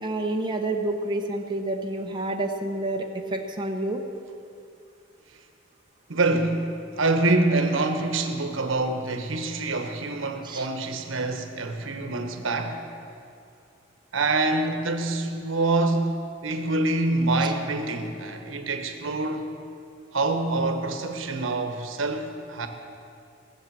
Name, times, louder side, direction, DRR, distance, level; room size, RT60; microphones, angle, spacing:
voice 1, 0.0-4.0 10.4-10.7 17.4-17.5, right 2 dB, 20° right, 1 dB, 0.9 m, -29 dB
voice 2, 6.1-6.6 7.0-12.8 14.1-16.1 16.4-19.5 20.1-22.7, right 2 dB, 80° right, 5 dB, 1.2 m, -26 dB
18.0 x 7.4 x 7.6 m, 2.5 s
head